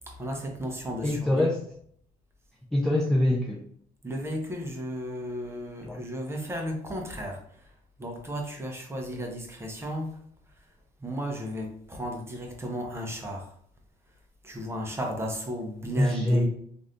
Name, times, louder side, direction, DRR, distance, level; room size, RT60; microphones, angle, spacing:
voice 1, 0.1-1.4 4.0-7.4 8.0-10.2 11.0-13.5 14.4-16.5, equal, 15° right, 1 dB, 0.8 m, -34 dB
voice 2, 1.0-1.6 2.7-3.6 5.9-6.0 16.0-16.5, left 1 dB, ahead, -2 dB, 0.4 m, -24 dB
3.1 x 2.6 x 2.7 m, 0.63 s
cardioid pair, 110°, 17 cm